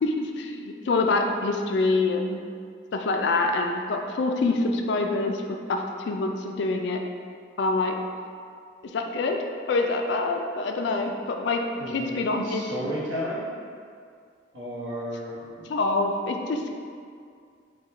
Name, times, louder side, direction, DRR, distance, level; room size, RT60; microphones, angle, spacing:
voice 1, 0.0-2.4 2.9-5.4 5.7-7.0 7.6-8.0 8.9-9.4 9.7-11.6 11.9-12.6 15.7-16.7, left 3 dB, 60° left, 3 dB, 0.3 m, -25 dB
voice 2, 11.8-12.2 12.4-13.4 14.5-15.7, equal, 80° right, -7 dB, 1.1 m, -33 dB
3.7 x 2.2 x 4.2 m, 2.2 s
head